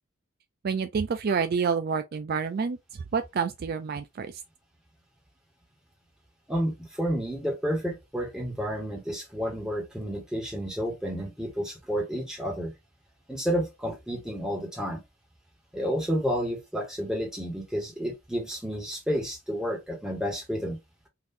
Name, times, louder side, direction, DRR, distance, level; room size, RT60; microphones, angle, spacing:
voice 1, 0.6-2.8 3.1-4.4, right 5 dB, 45° right, 0.3 m, -28 dB
voice 2, 6.5-12.7 13.3-15.0 15.7-20.8, equal, 5° right, 1.3 m, -30 dB
3.8 x 2.6 x 2.7 m
head